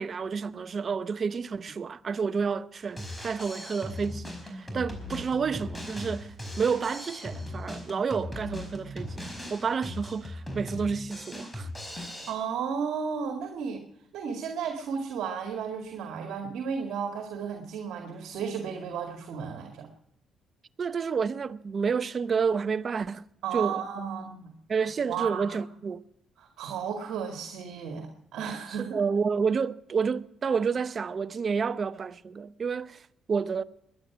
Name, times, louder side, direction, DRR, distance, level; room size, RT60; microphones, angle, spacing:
voice 1, 0.0-11.7 20.8-23.3 23.5-23.8 24.7-26.0 28.8-33.0 33.3-33.6, right 5 dB, 45° right, 0.7 m, -30 dB
Drum kit, 2.9-12.3, left 1 dB, 10° left, 4.9 m, -39 dB
voice 2, 12.3-13.9 14.1-19.9 23.4-24.5 25.1-25.6 26.4-29.0, right 6 dB, 80° right, 2.0 m, -34 dB
21.5 x 10.0 x 6.0 m
cardioid pair, 90°, 0 cm